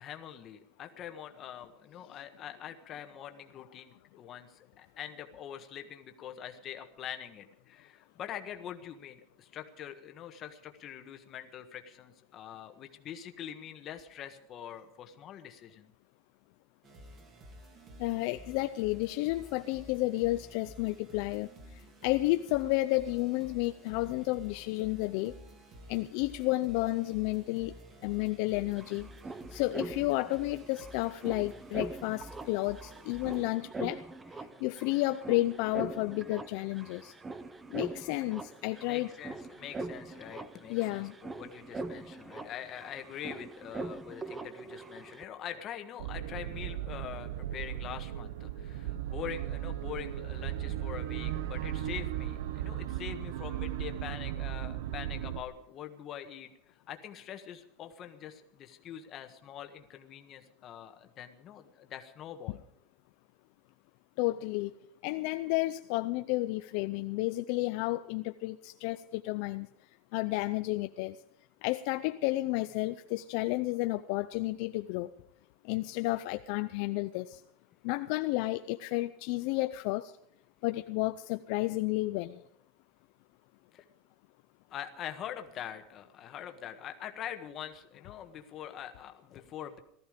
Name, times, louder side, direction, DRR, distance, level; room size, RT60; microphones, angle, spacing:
voice 1, 0.0-15.9 38.7-62.6 83.7-83.8 84.7-89.8, left 10 dB, 30° left, 6 dB, 1.5 m, -44 dB
sound 1, 16.8-33.6, equal, 30° right, 2.8 m, -52 dB
voice 2, 18.0-21.5 22.0-25.3 25.9-27.7 28.0-29.1 29.5-34.0 34.6-37.1 37.7-39.1 40.7-41.1 64.2-64.7 65.0-69.7 70.1-71.2 71.6-75.1 75.6-77.4 77.8-80.1 80.6-82.4, left 19 dB, 55° left, 10 dB, 0.5 m, -31 dB
sound 2, 28.2-28.3 28.5-45.2, right 3 dB, 10° right, 0.8 m, -43 dB
sound 3, 46.0-55.4, right 12 dB, 80° right, 1.1 m, -36 dB
18.5 x 14.0 x 5.2 m, 0.76 s
supercardioid pair, 165°, 0 cm